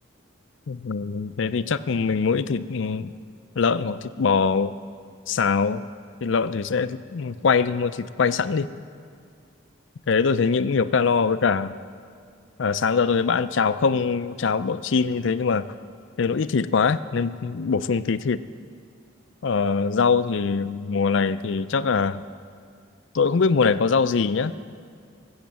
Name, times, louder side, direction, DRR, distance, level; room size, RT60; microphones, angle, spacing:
voice 1, 0.7-3.1 3.6-4.8 5.3-5.9 6.2-8.7 10.1-11.7 12.6-15.6 16.2-18.4 19.4-22.2 23.1-24.5, left 5 dB, 65° left, 14 dB, 0.4 m, -23 dB
19.0 x 8.0 x 7.5 m, 2.2 s
head